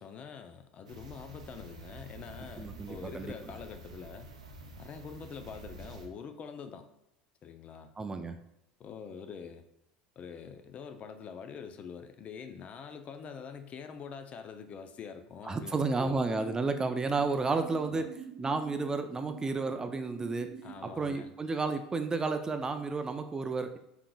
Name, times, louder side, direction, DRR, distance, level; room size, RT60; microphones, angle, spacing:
voice 1, 0.0-4.3 4.8-6.9 7.4-7.9 8.8-9.6 10.2-16.2 17.9-18.1 20.6-21.3, left 6 dB, 40° left, 7 dB, 0.5 m, -45 dB
sound 1, 0.9-6.1, right 2 dB, 90° right, 0.5 m, -48 dB
voice 2, 2.6-3.3 8.0-8.5 15.5-18.1 18.4-20.6 20.8-23.8, right 3 dB, 20° right, 8 dB, 0.4 m, -32 dB
sound 2, 15.7-20.7, right 6 dB, 50° right, 0.8 m, -46 dB
4.5 x 3.6 x 2.3 m, 0.82 s
hypercardioid pair, 80°, 4 cm